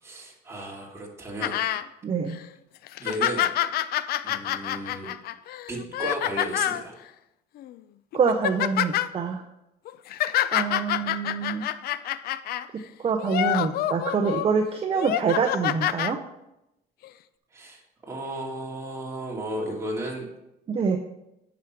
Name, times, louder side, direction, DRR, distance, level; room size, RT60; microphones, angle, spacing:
voice 1, 0.0-1.6 3.0-3.5 4.2-5.1 5.7-6.9 17.5-20.2, right 1 dB, 15° right, -2 dB, 2.3 m, -34 dB
sound 1, 1.4-1.8 2.3-2.4 2.9-6.8 7.6-7.8 8.1-9.1 9.9-12.7 13.2-14.5 14.9-16.1 17.0-17.1, left 12 dB, 65° left, 0.4 m, -27 dB
voice 2, 2.0-2.4 8.1-9.4 10.5-11.7 13.0-16.2 20.7-21.0, right 5 dB, 35° right, 5 dB, 0.7 m, -25 dB
9.4 x 6.0 x 4.7 m, 0.88 s
cardioid pair, 110°, 17 cm